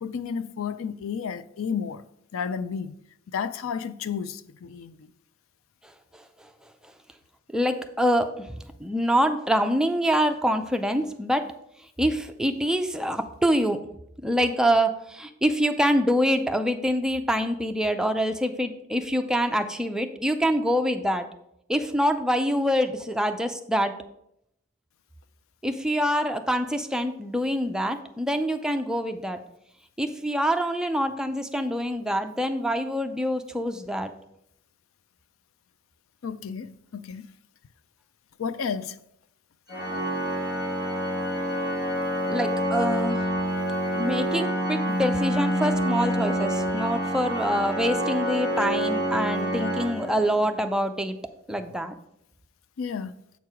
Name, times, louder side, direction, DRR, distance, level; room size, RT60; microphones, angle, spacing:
voice 1, 0.0-2.0 2.3-3.0 3.3-5.1 36.2-37.4 38.4-39.0 52.8-53.2, left 6 dB, 85° left, 0.4 m, -32 dB
voice 2, 7.5-11.4 12.0-13.8 14.2-21.2 21.7-23.9 25.6-29.4 30.0-34.1 42.3-43.2 44.0-51.2 51.5-51.9, equal, 5° right, 0.4 m, -25 dB
Organ, 39.7-50.6, equal, 50° left, 1.8 m, -27 dB
8.0 x 4.6 x 4.8 m
head